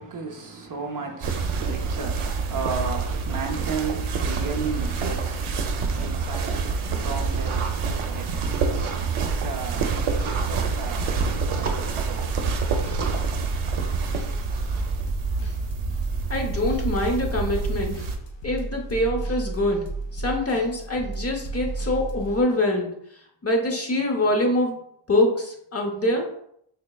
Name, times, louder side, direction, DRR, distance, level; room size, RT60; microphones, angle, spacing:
voice 1, 0.0-13.2, right 4 dB, 45° right, 0.4 m, -35 dB
sound 1, 1.2-18.2, right 4 dB, 85° right, 0.6 m, -27 dB
sound 2, 12.2-22.4, right 3 dB, 60° left, 0.8 m, -33 dB
voice 2, 16.3-18.0 18.4-19.8 20.1-22.9 23.4-24.8 25.1-26.3, left 1 dB, 30° left, 0.6 m, -24 dB
4.1 x 3.1 x 2.2 m
wide cardioid pair, 140°, 48 cm